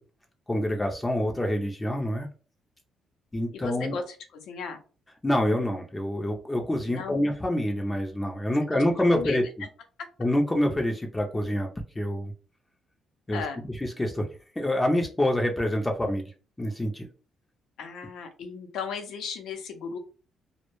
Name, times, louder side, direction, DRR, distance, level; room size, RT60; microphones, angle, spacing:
voice 1, 0.5-2.3 3.3-4.0 5.2-9.4 10.2-11.7 12.0-12.3 13.3-13.4 13.8-14.3 14.6-16.2 16.6-17.1, left 1 dB, 15° left, 2 dB, 0.5 m, -26 dB
voice 2, 3.5-4.8 6.9-7.2 8.7-8.8 9.1-9.7 13.3-13.6 17.8-20.0, left 5 dB, 80° left, 5 dB, 0.6 m, -36 dB
2.1 x 2.1 x 3.0 m, 0.36 s
cardioid pair, 90°, 0 cm